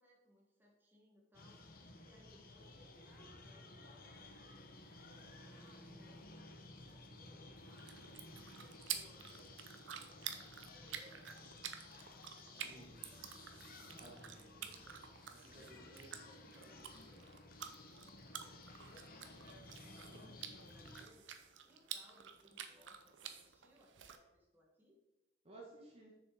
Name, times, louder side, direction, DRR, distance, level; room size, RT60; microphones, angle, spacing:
voice 1, 0.0-8.1 8.5-13.5 14.1-15.1 15.5-19.2 19.9-25.0, equal, 10° right, -3 dB, 1.7 m, -68 dB
sound 1, 1.3-21.1, left 2 dB, 50° left, 1.0 m, -56 dB
sound 2, 7.6-24.2, right 9 dB, 70° right, 0.7 m, -50 dB
voice 2, 12.6-13.0 13.8-14.2 15.3-16.9 25.4-26.1, right 2 dB, 30° right, -3 dB, 1.5 m, -58 dB
6.5 x 6.3 x 4.9 m, 1.0 s
head